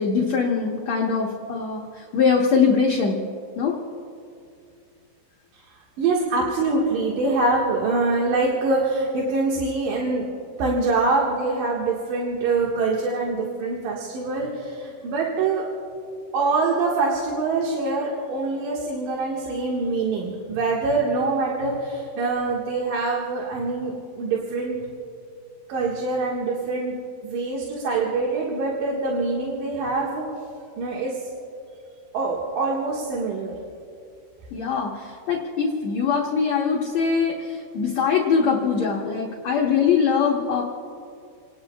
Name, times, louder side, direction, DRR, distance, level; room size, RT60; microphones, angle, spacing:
voice 1, 0.0-3.2 3.6-3.8 34.5-40.6, left 6 dB, 60° left, -1 dB, 2.1 m, -22 dB
voice 2, 6.0-10.2 10.6-15.7 16.3-24.8 25.7-26.9 27.2-30.2 30.8-31.3 32.1-33.5, right 3 dB, 65° right, -3 dB, 3.2 m, -24 dB
30.0 x 19.0 x 2.4 m, 2.4 s
omnidirectional pair, 4.4 m